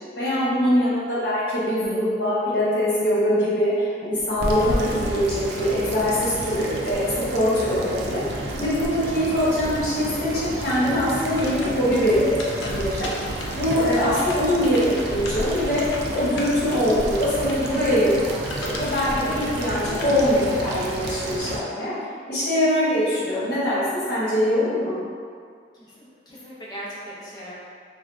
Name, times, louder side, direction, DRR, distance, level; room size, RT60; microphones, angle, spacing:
voice 1, 0.2-15.8 16.1-21.9 22.3-23.8 24.1-24.9, equal, 60° left, -10 dB, 1.0 m, -23 dB
sound 1, 4.2-21.6, right 1 dB, 65° right, 0.3 m, -31 dB
sound 2, 11.2-21.2, left 1 dB, 80° left, 0.4 m, -38 dB
voice 2, 25.7-27.6, equal, 25° left, -7 dB, 0.5 m, -39 dB
3.4 x 2.1 x 2.4 m, 2.1 s
head